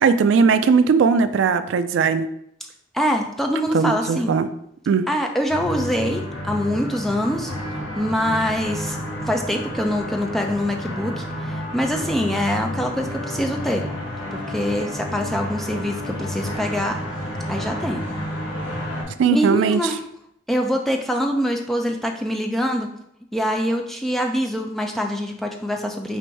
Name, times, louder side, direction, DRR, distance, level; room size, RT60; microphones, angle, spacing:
voice 1, 0.0-2.2 3.7-4.5 4.9-5.1 19.2-19.8, right 5 dB, 75° right, 10 dB, 0.3 m, -18 dB
voice 2, 2.9-4.3 5.1-7.5 8.0-9.0 9.3-13.9 14.3-17.0 17.5-18.1 19.3-20.0 20.5-22.9 23.3-26.2, equal, ahead, 2 dB, 0.4 m, -24 dB
sound 1, 5.5-19.0, left 1 dB, 75° left, 1.6 m, -30 dB
4.6 x 2.6 x 4.6 m, 0.75 s
head